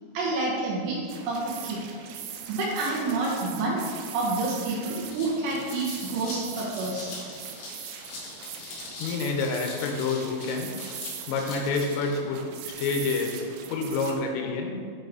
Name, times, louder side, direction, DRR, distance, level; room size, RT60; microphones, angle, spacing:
voice 1, 0.1-1.0 1.2-1.8 2.5-3.8 4.1-7.1, right 2 dB, 70° right, -4 dB, 2.9 m, -28 dB
sound 1, 1.1-14.1, right 7 dB, 90° right, 3.3 m, -41 dB
sound 2, 4.4-4.5 4.8-12.2, left 2 dB, 65° left, 3.9 m, -42 dB
voice 2, 9.0-10.7 11.3-12.4 12.8-13.3 13.7-14.8, left 4 dB, 85° left, 2 dB, 3.4 m, -28 dB
10.5 x 4.9 x 4.0 m, 2.1 s
omnidirectional pair, 5.9 m